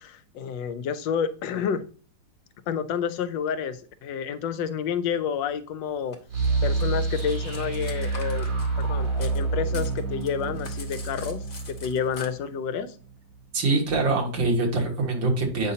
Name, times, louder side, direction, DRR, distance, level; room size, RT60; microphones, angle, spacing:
voice 1, 0.0-1.8 2.7-6.2 6.6-8.5 8.8-13.0, left 7 dB, 80° left, 13 dB, 1.3 m, -29 dB
Cutlery silverware, 6.1-9.4 9.7-12.3, left 3 dB, 35° left, 0.7 m, -44 dB
sound 1, 6.3-13.1, right 3 dB, 60° right, 4.1 m, -28 dB
voice 2, 13.5-15.7, right 3 dB, 80° right, 1 dB, 2.5 m, -24 dB
8.6 x 5.1 x 2.8 m, 0.39 s
omnidirectional pair, 2.0 m